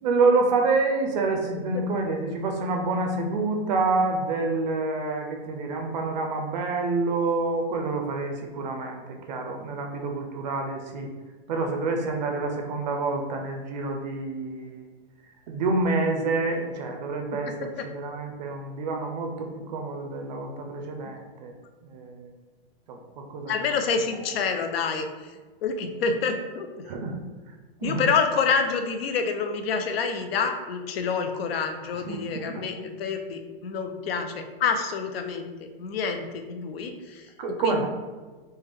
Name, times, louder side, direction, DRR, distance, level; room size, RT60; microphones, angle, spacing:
voice 1, 0.0-9.0 9.3-11.1 11.5-14.9 15.5-17.7 17.9-21.5 21.9-22.3 22.9-23.5 26.9-27.2 27.8-28.1 32.1-32.6 37.4-37.9, right 3 dB, 50° right, 3 dB, 0.4 m, -27 dB
voice 2, 1.7-2.2 17.5-17.8 23.5-25.3 25.6-26.7 27.8-37.9, left 5 dB, 85° left, 6 dB, 0.6 m, -28 dB
3.4 x 2.2 x 3.4 m, 1.3 s
supercardioid pair, 165°, 29 cm